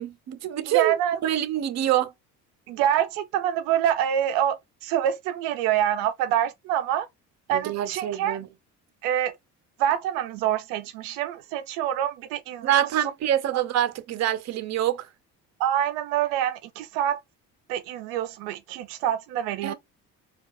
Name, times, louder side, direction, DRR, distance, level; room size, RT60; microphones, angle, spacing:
voice 1, 0.0-1.0 1.2-2.1 7.5-8.5 12.6-15.1 19.6-19.7, right 12 dB, 50° right, 0.7 m, -25 dB
voice 2, 0.7-1.2 2.7-7.1 7.5-8.4 9.0-9.3 9.8-12.9 13.5-13.6 15.6-17.2 17.7-19.7, right 10 dB, 85° right, 0.5 m, -26 dB
4.4 x 2.3 x 2.5 m
supercardioid pair, 90°, 33 cm